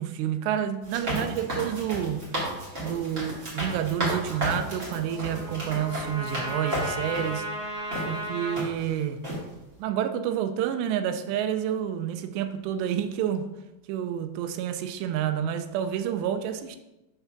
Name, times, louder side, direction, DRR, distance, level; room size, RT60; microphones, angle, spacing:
voice 1, 0.0-2.2 2.8-7.5 8.1-9.2 9.8-13.5 13.9-16.8, right 9 dB, 90° right, 8 dB, 2.8 m, -29 dB
sound 1, 0.8-7.3 7.9-8.1 8.6-8.9 9.2-9.4, right 1 dB, 35° right, 1.2 m, -33 dB
Trumpet, 4.3-8.6, right 1 dB, 60° right, 3.0 m, -35 dB
7.0 x 3.3 x 5.7 m, 0.97 s
omnidirectional pair, 4.9 m